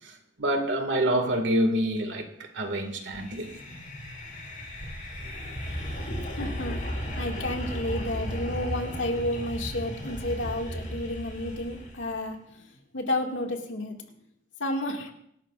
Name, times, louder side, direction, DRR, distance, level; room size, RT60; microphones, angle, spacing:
voice 1, 0.0-3.6, right 1 dB, 75° right, 2.0 m, -27 dB
sound 1, 3.0-12.2, equal, 45° left, 4.8 m, -35 dB
voice 2, 6.3-6.8 7.2-14.0 14.6-15.1, left 1 dB, 90° left, 2.0 m, -31 dB
25.0 x 12.0 x 2.5 m
head